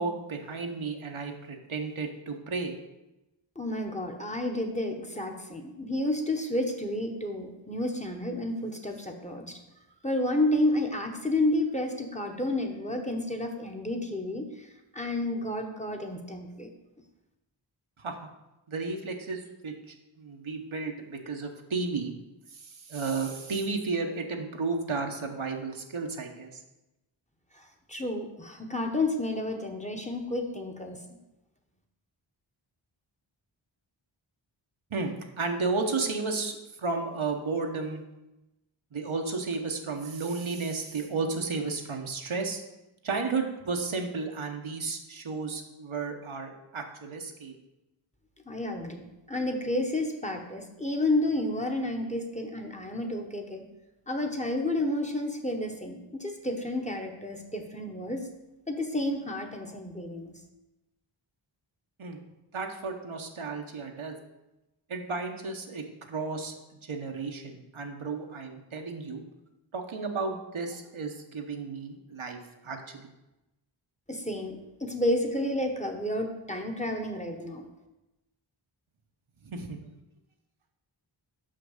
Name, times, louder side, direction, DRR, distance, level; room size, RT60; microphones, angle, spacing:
voice 1, 0.0-2.7 18.0-18.3 18.7-19.7 20.2-22.1 22.5-26.6 34.9-38.0 38.9-42.6 43.0-47.5 62.0-62.2 62.5-64.2 64.9-66.5 66.8-69.2 69.7-73.1 79.4-79.8, right 4 dB, 75° right, 3 dB, 1.1 m, -33 dB
voice 2, 3.5-9.6 10.0-16.7 27.5-31.0 48.5-53.6 54.1-58.3 58.7-60.3 74.1-77.6, left 1 dB, 15° left, 3 dB, 1.0 m, -31 dB
5.9 x 5.8 x 6.5 m, 0.97 s
wide cardioid pair, 70°, 48 cm